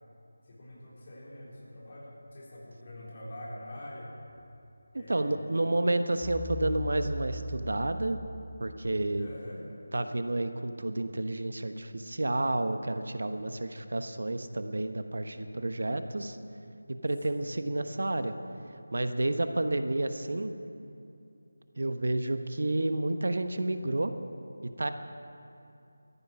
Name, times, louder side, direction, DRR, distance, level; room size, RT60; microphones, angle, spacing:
voice 1, 0.4-4.1 4.9-5.4 9.1-9.7 17.3-17.6, left 1 dB, 35° left, -5 dB, 3.8 m, -45 dB
voice 2, 5.1-8.2 8.6-9.3 9.9-16.4 16.9-18.3 18.9-20.5 21.8-24.1 24.6-24.9, right 2 dB, 70° right, 9 dB, 1.0 m, -30 dB
sound 1, 6.2-9.3, left 1 dB, 5° right, 0.5 m, -39 dB
15.5 x 14.0 x 6.0 m, 2.6 s
figure-of-eight pair, 175°, 0 cm